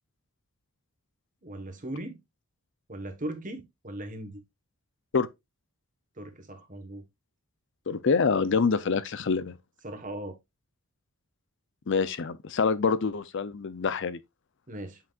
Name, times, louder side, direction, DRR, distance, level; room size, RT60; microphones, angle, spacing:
voice 1, 1.4-2.2 2.9-4.4 6.2-7.0 9.8-10.4 14.7-15.0, right 1 dB, 35° right, 1.4 m, -38 dB
voice 2, 7.9-9.6 11.9-14.2, left 5 dB, 55° left, 0.5 m, -26 dB
7.9 x 5.8 x 2.4 m
head